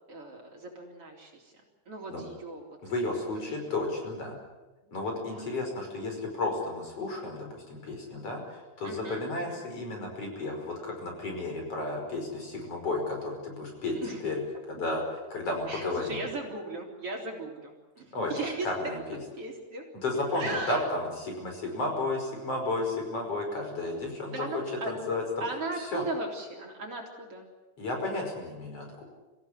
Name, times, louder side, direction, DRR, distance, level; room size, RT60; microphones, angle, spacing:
voice 1, 0.1-1.5 1.9-2.6 3.5-3.6 5.3-5.4 8.8-9.6 13.9-14.2 15.7-18.7 19.4-19.8 20.3-20.8 24.3-24.9 25.4-27.5, right 3 dB, 45° right, 0 dB, 4.6 m, -37 dB
voice 2, 2.8-4.4 4.9-14.4 14.7-15.0 15.3-16.3 18.1-19.0 20.0-25.4 25.8-26.0 27.8-29.1, left 2 dB, 50° left, 2 dB, 6.4 m, -33 dB
26.0 x 16.0 x 9.8 m, 1.1 s
omnidirectional pair, 3.5 m